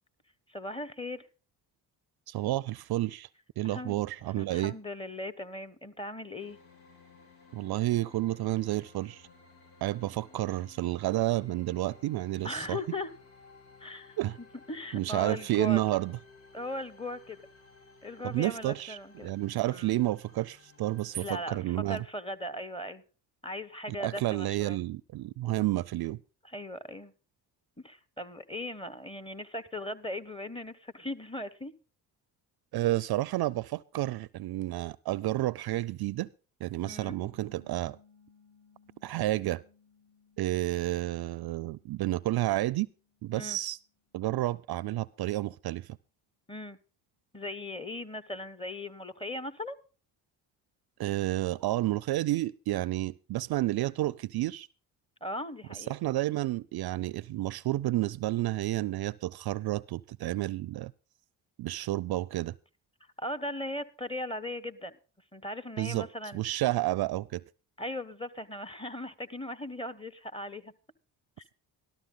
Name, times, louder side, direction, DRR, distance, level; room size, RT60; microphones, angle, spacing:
voice 1, 0.5-1.3 3.6-4.0 4.4-6.6 12.4-13.1 13.8-14.2 14.7-15.8 16.5-17.4 18.0-19.3 19.7-19.9 21.2-23.0 23.4-24.8 26.4-27.1 27.8-31.7 36.8-37.2 43.3-43.6 46.5-46.8 47.3-49.8 55.2-55.9 63.2-65.0 65.3-66.4 67.8-70.7, left 1 dB, 10° left, 1.2 m, -38 dB
voice 2, 2.3-3.3 3.6-4.7 7.5-9.3 9.8-12.8 14.2-14.4 14.9-16.2 18.2-22.0 24.0-26.2 32.7-36.3 36.6-38.0 39.0-39.6 40.4-42.9 43.2-43.8 44.1-46.0 51.0-54.7 55.7-60.9 61.6-62.5 65.8-66.1 66.3-67.4, right 16 dB, 55° right, 0.5 m, -30 dB
sound 1, 6.4-21.4, left 3 dB, 90° left, 3.1 m, -57 dB
Mallet percussion, 36.9-44.3, left 3 dB, 40° left, 6.4 m, -63 dB
13.0 x 13.0 x 3.9 m
supercardioid pair, 55°, 47 cm